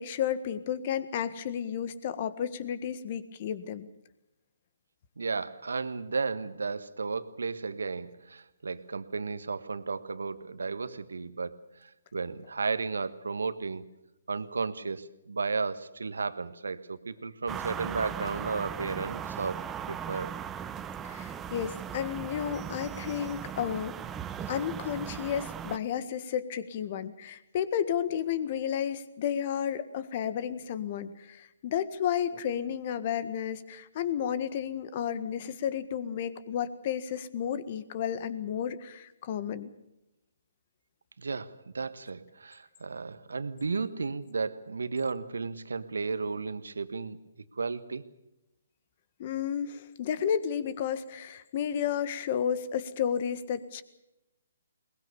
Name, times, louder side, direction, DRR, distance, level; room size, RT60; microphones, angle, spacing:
voice 1, 0.0-3.9 21.0-24.0 24.5-39.7 49.2-53.8, left 9 dB, 40° left, 14 dB, 1.6 m, -32 dB
voice 2, 5.2-13.9 14.3-20.3 41.2-47.2 47.5-48.0, right 4 dB, 80° right, 13 dB, 1.4 m, -34 dB
sound 1, 17.5-25.8, right 8 dB, 15° right, 0.9 m, -38 dB
22.0 x 20.5 x 7.0 m, 0.93 s
figure-of-eight pair, 140°, 0 cm